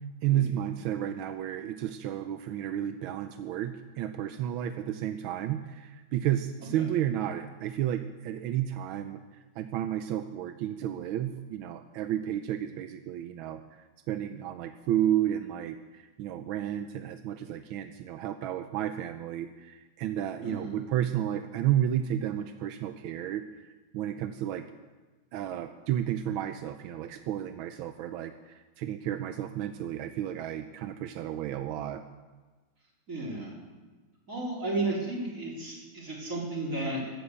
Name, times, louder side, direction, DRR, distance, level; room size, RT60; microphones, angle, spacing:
voice 1, 0.2-9.2 9.6-24.6 25.3-32.0, right 11 dB, 85° right, 8 dB, 1.5 m, -32 dB
voice 2, 20.4-20.7 33.1-33.5 34.3-37.0, right 2 dB, 40° right, -4 dB, 4.4 m, -33 dB
13.0 x 12.0 x 8.2 m, 1.3 s
omnidirectional pair, 2.2 m